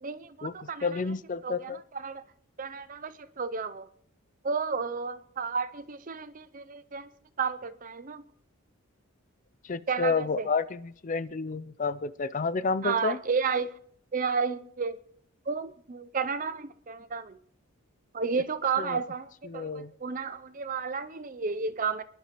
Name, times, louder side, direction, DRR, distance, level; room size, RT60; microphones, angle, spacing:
voice 1, 0.0-1.0 1.4-2.2 2.6-3.9 4.4-7.1 7.4-8.2 9.9-10.5 12.8-13.8 14.1-15.0 15.5-17.4 18.1-22.0, right 5 dB, 40° right, 0.5 m, -32 dB
voice 2, 0.8-1.8 9.6-13.2 18.8-19.0 19.4-19.9, left 4 dB, 35° left, 0.5 m, -30 dB
29.5 x 11.5 x 3.1 m
head